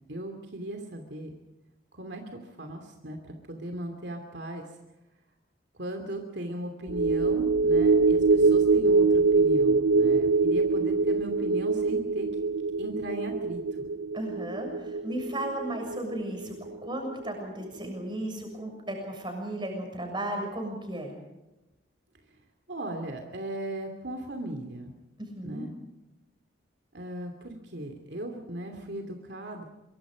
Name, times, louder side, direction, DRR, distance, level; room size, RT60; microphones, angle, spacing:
voice 1, 0.1-1.3 1.9-4.7 5.8-12.3 12.8-13.6 22.7-24.9 25.4-25.7 26.9-29.6, right 1 dB, 65° right, 4 dB, 2.7 m, -37 dB
sound 1, 6.9-17.5 17.8-18.0, right 4 dB, 85° right, 0.6 m, -24 dB
voice 2, 14.1-21.1 25.2-25.7, right 1 dB, 25° right, 3 dB, 7.0 m, -35 dB
25.0 x 23.5 x 5.1 m, 1.0 s
head